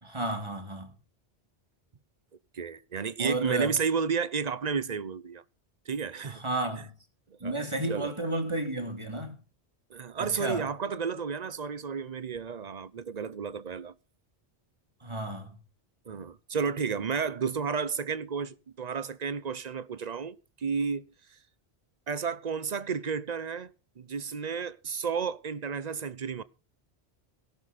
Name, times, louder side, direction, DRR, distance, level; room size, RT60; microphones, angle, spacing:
voice 1, 0.0-0.9 3.2-3.7 6.2-6.9 7.4-9.3 10.2-10.6 15.0-15.5, right 2 dB, 25° right, 2.9 m, -32 dB
voice 2, 2.5-5.4 5.9-6.4 7.4-8.1 9.9-13.9 16.1-21.0 22.1-26.4, right 6 dB, 40° right, 0.9 m, -32 dB
18.5 x 12.0 x 4.2 m
omnidirectional pair, 1.1 m